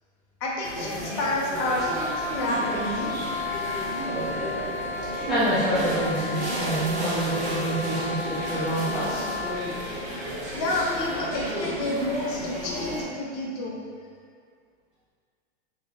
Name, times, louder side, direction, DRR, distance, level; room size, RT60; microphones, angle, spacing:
voice 1, 0.4-3.1 10.5-13.8, left 1 dB, 35° left, -4 dB, 0.7 m, -29 dB
sound 1, 0.6-13.0, right 1 dB, 20° right, 0.8 m, -33 dB
Wind instrument woodwind instrument, 1.5-9.7, left 3 dB, 75° left, 0.9 m, -33 dB
voice 2, 5.3-9.2, right 1 dB, 5° right, -14 dB, 0.4 m, -27 dB
5.2 x 3.0 x 2.3 m, 2.1 s
supercardioid pair, 155°, 33 cm